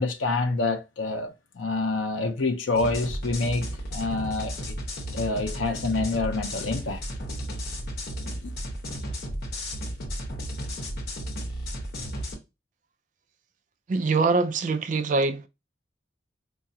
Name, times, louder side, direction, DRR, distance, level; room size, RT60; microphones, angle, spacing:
voice 1, 0.0-4.8 5.1-7.0 8.4-8.5, left 3 dB, 85° left, 0.5 m, -27 dB
sound 1, 2.7-12.3, equal, 50° left, 1.0 m, -34 dB
voice 2, 13.9-15.5, right 3 dB, 40° right, 0.3 m, -24 dB
4.7 x 2.3 x 2.7 m
head